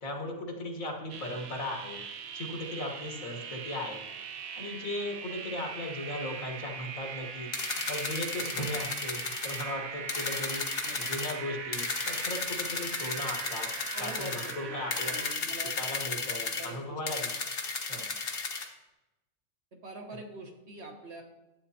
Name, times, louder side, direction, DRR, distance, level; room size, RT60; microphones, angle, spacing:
voice 1, 0.0-2.0 2.3-4.0 4.6-13.7 14.0-15.1 15.5-17.3 17.9-18.1, left 1 dB, 75° left, 2 dB, 1.8 m, -37 dB
sound 1, 1.1-15.3, right 6 dB, 85° right, 1.2 m, -41 dB
sound 2, 7.5-9.7 10.1-11.3 11.7-14.5 14.9-16.7 17.1-18.7, left 4 dB, 50° left, 1.2 m, -34 dB
voice 2, 13.7-14.3 14.6-15.7 16.3-17.0 19.7-21.2, right 2 dB, 55° right, 2 dB, 1.4 m, -44 dB
11.0 x 8.6 x 2.8 m, 1.0 s
omnidirectional pair, 1.4 m